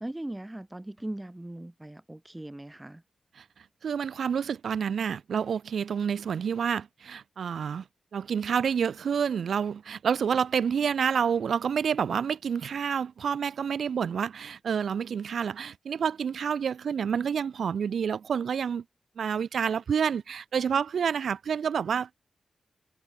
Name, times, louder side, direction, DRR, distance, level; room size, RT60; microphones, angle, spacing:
voice 1, 0.0-3.0, right 1 dB, 15° right, 1.2 m, -39 dB
voice 2, 3.8-7.8 8.1-18.8 19.2-22.2, right 7 dB, 80° right, 1.1 m, -28 dB
wide cardioid pair, 100°, 0 cm